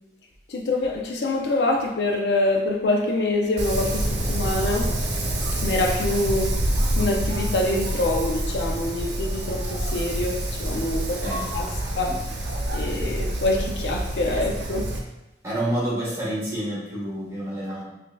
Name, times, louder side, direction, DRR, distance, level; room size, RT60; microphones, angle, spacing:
voice 1, 0.5-4.9 5.6-6.5 7.0-11.2 11.5-11.7 12.0-12.1 12.7-14.9, left 2 dB, 70° left, 1 dB, 0.5 m, -25 dB
Wind, 3.6-15.0, right 1 dB, 70° right, 0.7 m, -27 dB
voice 2, 11.2-11.9 15.4-17.8, right 1 dB, 15° right, -8 dB, 1.3 m, -29 dB
5.2 x 2.7 x 2.2 m, 0.95 s
head